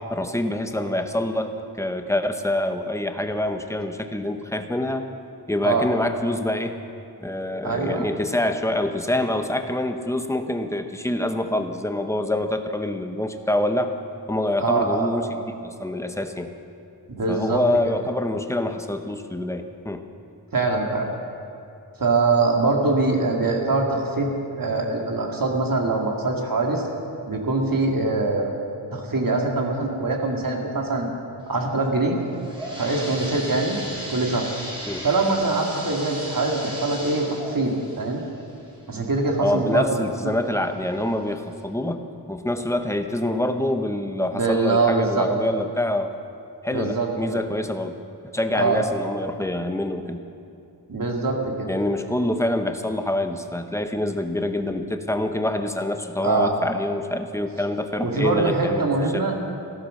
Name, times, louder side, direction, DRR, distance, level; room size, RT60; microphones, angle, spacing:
voice 1, 0.1-5.0 5.5-6.8 7.2-13.9 14.3-15.4 15.6-16.5 17.3-20.0 34.9-35.1 39.4-42.0 42.3-46.1 46.6-48.0 48.3-50.2 51.7-58.9 59.1-59.2, left 1 dB, 5° left, 7 dB, 1.0 m, -26 dB
voice 2, 7.6-8.1 14.6-15.1 17.1-17.9 20.5-21.1 22.0-24.3 24.6-26.8 27.3-28.6 28.9-31.1 31.5-32.2 32.8-33.8 34.1-34.5 35.0-38.2 38.9-39.8 44.3-45.3 46.7-47.4 48.5-48.8 50.9-51.7 56.2-56.6 58.0-59.4, right 3 dB, 55° right, 1 dB, 2.2 m, -23 dB
sound 1, 32.2-39.8 40.3-40.4 41.1-41.2 41.6-41.7, equal, 10° right, 4.4 m, -36 dB
15.0 x 12.5 x 6.5 m, 2.6 s
wide cardioid pair, 80°, 41 cm